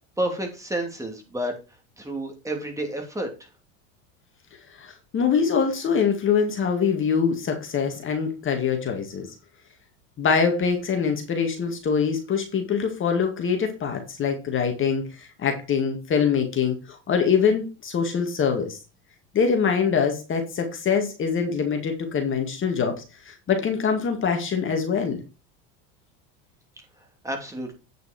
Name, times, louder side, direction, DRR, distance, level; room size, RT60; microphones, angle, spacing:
voice 1, 0.2-1.5 2.0-3.5 27.2-27.7, right 1 dB, 10° right, 3 dB, 2.9 m, -30 dB
voice 2, 4.8-9.3 10.2-18.8 19.3-25.2, left 6 dB, 35° left, 5 dB, 2.1 m, -24 dB
8.9 x 6.7 x 4.4 m, 0.28 s
supercardioid pair, 115°, 36 cm